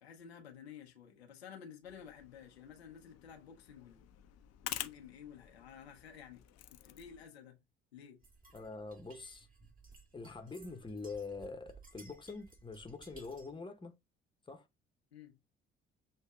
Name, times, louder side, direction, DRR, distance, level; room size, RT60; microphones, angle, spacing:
voice 1, 0.0-4.1 4.6-7.6 7.9-8.2 15.1-15.4, left 8 dB, 90° left, 0.8 m, -53 dB
sound 1, 1.8-7.3, left 13 dB, 55° left, 0.6 m, -48 dB
sound 2, 8.2-13.6, right 3 dB, 25° right, 1.7 m, -59 dB
voice 2, 8.5-9.5 10.1-13.9 14.5-14.7, left 4 dB, 15° left, 0.9 m, -45 dB
6.4 x 2.7 x 2.3 m
hypercardioid pair, 50°, 31 cm